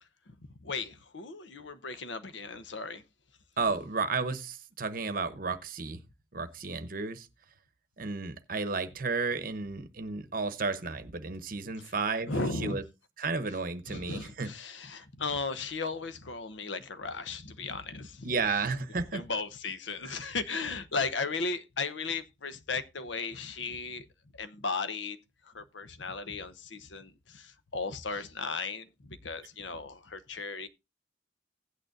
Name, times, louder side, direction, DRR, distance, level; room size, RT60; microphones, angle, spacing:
voice 1, 0.6-3.0 12.3-12.8 13.9-18.3 19.1-24.1 24.4-25.2 25.5-30.7, left 4 dB, 75° left, 0.8 m, -36 dB
voice 2, 3.6-6.0 6.3-7.3 8.0-12.8 13.2-14.5 18.2-19.2 20.0-20.2, right 4 dB, 50° right, 0.8 m, -33 dB
16.0 x 8.8 x 2.6 m
head